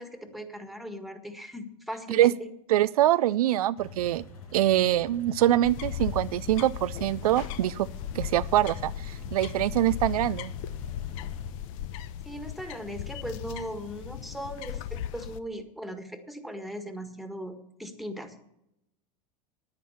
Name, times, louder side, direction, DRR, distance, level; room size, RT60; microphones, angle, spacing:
voice 1, 0.0-2.5 12.3-18.4, equal, ahead, 7 dB, 1.7 m, -39 dB
voice 2, 2.7-4.2 4.5-7.9 8.1-10.5, right 13 dB, 80° right, 16 dB, 0.4 m, -24 dB
sound 1, 3.8-11.5, left 2 dB, 80° left, 5.4 m, -46 dB
sound 2, 5.6-15.4, left 10 dB, 65° left, 0.8 m, -37 dB
10.5 x 9.8 x 7.1 m, 0.83 s
hypercardioid pair, 90°, 19 cm